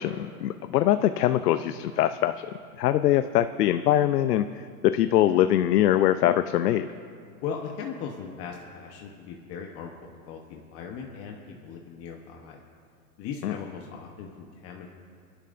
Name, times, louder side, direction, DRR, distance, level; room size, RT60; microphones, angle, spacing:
voice 1, 0.0-2.5 2.8-6.9 13.4-13.5, left 12 dB, 90° left, 11 dB, 0.6 m, -23 dB
voice 2, 7.4-11.4 11.6-12.6 13.2-14.9, left 6 dB, 30° left, 1 dB, 1.0 m, -38 dB
25.5 x 11.5 x 2.5 m, 2.3 s
supercardioid pair, 140°, 46 cm